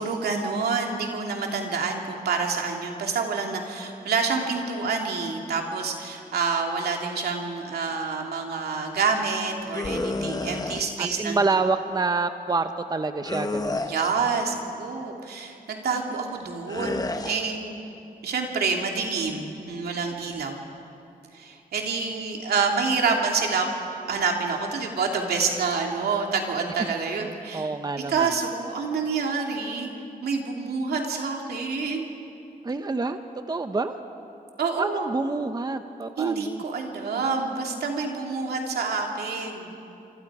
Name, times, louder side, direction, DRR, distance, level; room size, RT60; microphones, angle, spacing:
voice 1, 0.0-11.4 13.8-17.8 18.2-20.6 21.3-23.7 24.1-27.7 28.1-29.9 30.2-32.1 34.6-35.1 36.2-39.8, right 4 dB, 80° right, 1 dB, 2.7 m, -27 dB
sound 1, 9.7-10.8 13.2-14.3 16.7-17.4, left 2 dB, 25° left, 1.2 m, -30 dB
voice 2, 10.2-10.7 11.0-13.9 27.5-28.3 32.6-33.2 33.5-33.9 34.8-36.6, right 3 dB, 25° right, 8 dB, 0.9 m, -27 dB
26.5 x 25.0 x 4.9 m, 2.7 s
cardioid pair, 90°, 16 cm